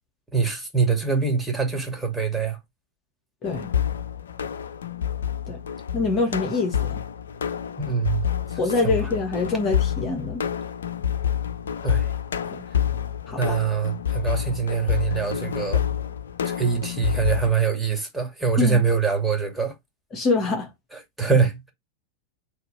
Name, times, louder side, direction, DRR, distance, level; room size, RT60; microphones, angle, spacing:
voice 1, 0.3-2.6 7.8-8.3 8.8-8.9 11.8-12.1 13.3-15.8 16.4-19.7 21.2-21.7, right 5 dB, 5° right, 2.7 m, -24 dB
sound 1, 3.4-17.5, left 9 dB, 65° left, 0.7 m, -28 dB
voice 2, 5.9-7.0 8.6-10.4 12.5-12.6 13.3-13.6 18.6-18.8 20.1-20.7, left 3 dB, 30° left, 2.0 m, -25 dB
8.3 x 3.2 x 4.9 m
figure-of-eight pair, 90°, 0 cm